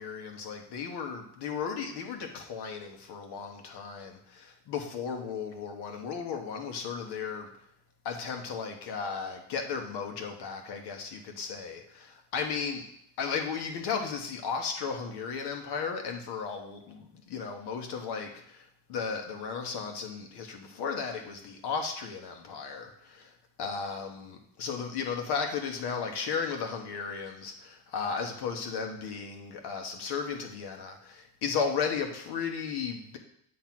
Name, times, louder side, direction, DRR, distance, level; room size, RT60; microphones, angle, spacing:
voice 1, 0.0-7.5 8.0-12.8 13.2-23.3 23.6-33.2, left 6 dB, 55° left, 4 dB, 1.2 m, -35 dB
7.6 x 3.3 x 5.9 m, 0.69 s
cardioid pair, 120°, 48 cm